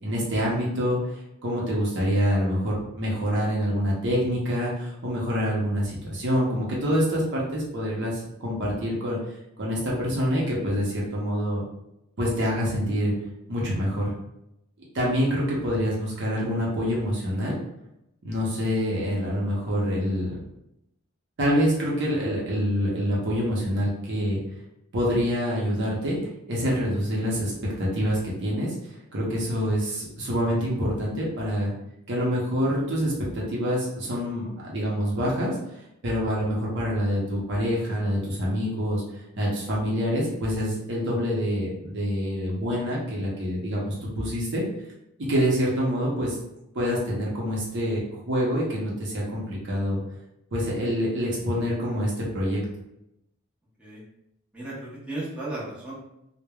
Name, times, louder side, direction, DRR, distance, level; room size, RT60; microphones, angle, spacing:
voice 1, 0.0-1.1 1.4-9.2 9.6-11.6 12.2-13.1 13.5-14.1 14.9-17.5 18.2-20.4 21.4-24.4 24.9-26.2 26.5-27.5 27.8-28.7 29.1-31.7 32.1-35.8 36.0-44.6 45.3-46.4 46.7-50.0 50.5-52.6, equal, 55° right, -4 dB, 0.7 m, -26 dB
voice 2, 54.5-55.9, right 2 dB, 5° right, -8 dB, 0.8 m, -35 dB
3.2 x 2.1 x 2.3 m, 0.84 s
head